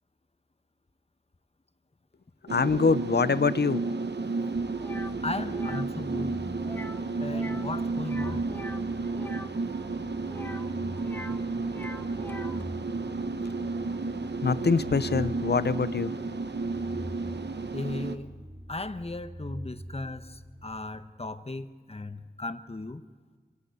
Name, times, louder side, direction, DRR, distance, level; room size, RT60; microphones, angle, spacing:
voice 1, 2.4-4.0 14.4-16.1, left 5 dB, 75° left, 16 dB, 0.7 m, -24 dB
sound 1, 2.5-18.2, right 3 dB, 90° right, 1.0 m, -32 dB
sound 2, 4.5-21.3, equal, 35° right, 1.7 m, -44 dB
sound 3, 4.8-5.1 5.5-5.9 6.6-7.0 7.3-7.7 8.0-9.5 10.3-11.4 11.7-12.6, left 1 dB, 10° left, 1.0 m, -43 dB
voice 2, 5.2-6.4 7.2-8.5 17.7-18.3 18.7-23.0, left 2 dB, 35° left, 11 dB, 1.1 m, -36 dB
26.0 x 18.5 x 8.2 m, 1.5 s
wide cardioid pair, 65°, 17 cm